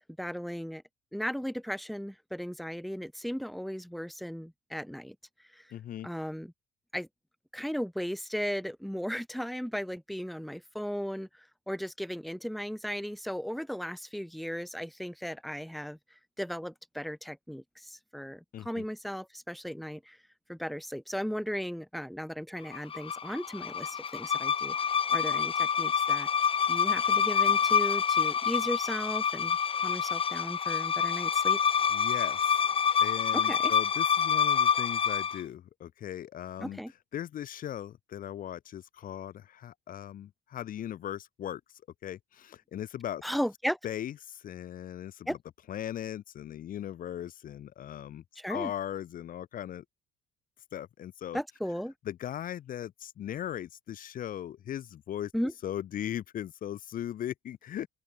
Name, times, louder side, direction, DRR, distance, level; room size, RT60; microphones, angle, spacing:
voice 1, 0.2-0.8 1.1-5.2 5.5-5.6 6.0-6.5 6.9-7.1 7.5-16.0 16.4-20.2 20.5-24.8 25.1-26.3 26.7-31.6 33.3-33.7 36.6-36.9 43.2-43.8 45.3-45.4 48.4-48.7 51.3-51.9 55.3-55.5, equal, ahead, 2.0 m, -36 dB
voice 2, 5.7-6.1 18.5-18.8 31.9-32.7 33.0-36.8 37.1-41.6 42.0-43.2 43.8-45.4 45.7-48.2 48.5-49.8 50.7-51.4 52.1-55.3 55.6-57.9, left 11 dB, 55° left, 1.4 m, -38 dB
sound 1, 22.7-35.4, left 7 dB, 30° left, 0.8 m, -27 dB
open air
cardioid pair, 110°, 17 cm